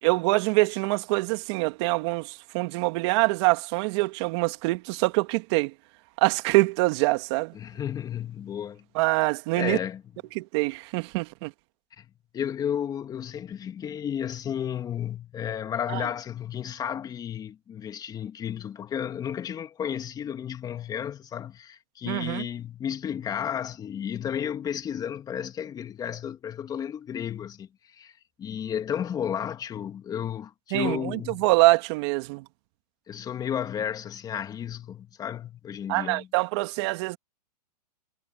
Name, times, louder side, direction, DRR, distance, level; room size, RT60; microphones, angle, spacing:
voice 1, 0.0-5.7 6.2-7.5 9.0-9.8 10.4-11.5 15.9-16.0 22.1-22.5 30.7-32.4 35.9-37.2, right 24 dB, 40° right, 1.9 m, -24 dB
voice 2, 7.5-8.8 9.5-10.0 12.0-12.1 12.3-31.5 33.1-36.3, left 9 dB, 20° left, 2.6 m, -33 dB
hypercardioid pair, 135°, 21 cm